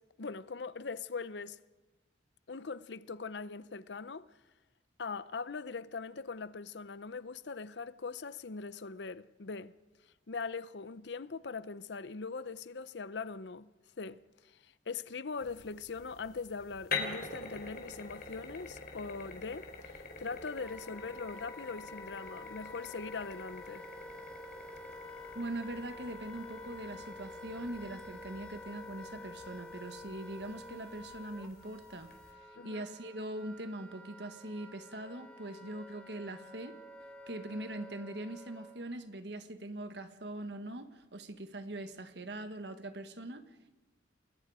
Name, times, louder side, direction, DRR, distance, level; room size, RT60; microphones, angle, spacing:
voice 1, 0.2-1.6 2.5-4.3 5.0-9.7 10.3-13.7 14.0-14.6 14.9-19.9 20.2-23.8 32.6-32.8, left 4 dB, 75° left, 0.7 m, -41 dB
sound 1, 15.4-32.3, left 4 dB, 55° left, 3.8 m, -46 dB
Wind instrument woodwind instrument, 20.1-38.9, left 1 dB, 5° left, 1.7 m, -50 dB
voice 2, 25.3-32.1 32.5-36.8 37.3-43.7, right 1 dB, 70° right, 1.6 m, -42 dB
29.0 x 21.0 x 4.9 m
head